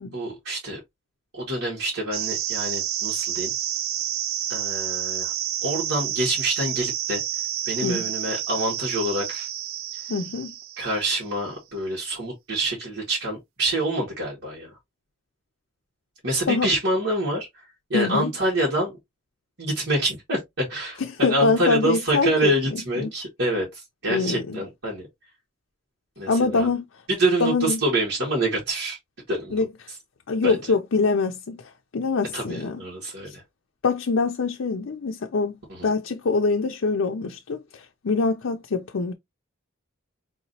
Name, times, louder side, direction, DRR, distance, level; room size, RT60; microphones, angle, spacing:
voice 1, 0.1-0.8 1.3-3.5 4.5-5.3 5.6-7.2 7.7-9.5 10.8-14.7 16.2-17.5 17.9-18.9 19.6-25.0 26.2-26.7 27.1-29.0 29.3-29.6 30.4-30.6 32.3-33.4 35.7-35.9, right 1 dB, 65° right, 1.9 m, -26 dB
sound 1, 2.1-11.3, right 11 dB, 85° right, 0.5 m, -29 dB
voice 2, 10.1-10.5 16.5-16.7 17.9-18.3 21.0-23.1 24.1-24.6 26.3-26.9 27.4-27.8 29.5-29.7 30.3-32.8 33.3-33.4 33.8-35.6 35.8-39.1, left 4 dB, 75° left, 0.5 m, -24 dB
4.8 x 3.0 x 2.7 m
head